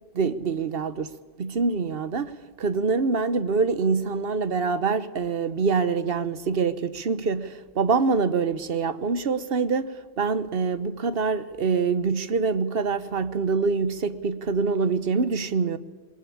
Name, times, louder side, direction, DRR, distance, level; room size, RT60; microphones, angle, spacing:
voice 1, 0.1-15.8, right 4 dB, 65° right, 1.1 m, -25 dB
21.0 x 19.5 x 8.6 m
omnidirectional pair, 1.0 m